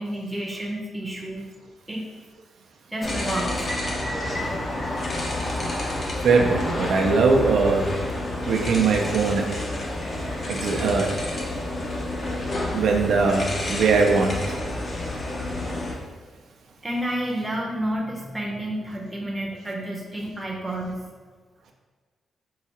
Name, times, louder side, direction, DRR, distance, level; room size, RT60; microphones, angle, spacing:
voice 1, 0.0-1.4 1.9-2.1 2.9-3.6 5.6-5.7 16.8-21.0, right 1 dB, 10° right, -2 dB, 0.7 m, -30 dB
sound 1, 3.0-15.9, left 1 dB, 35° left, 0.7 m, -29 dB
voice 2, 6.2-7.8 8.5-9.4 10.5-11.1 12.7-13.4 13.7-14.3, right 4 dB, 80° right, 1 dB, 0.5 m, -20 dB
4.7 x 2.4 x 4.1 m, 1.4 s
wide cardioid pair, 145°, 0 cm